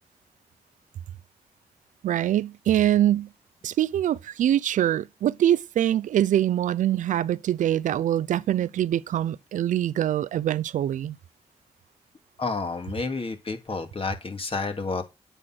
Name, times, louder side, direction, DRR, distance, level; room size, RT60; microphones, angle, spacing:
voice 1, 2.0-3.3 3.6-11.2, right 11 dB, 80° right, 0.6 m, -24 dB
voice 2, 12.4-15.0, left 4 dB, 45° left, 2.8 m, -30 dB
8.9 x 6.6 x 6.0 m
supercardioid pair, 40°, 13 cm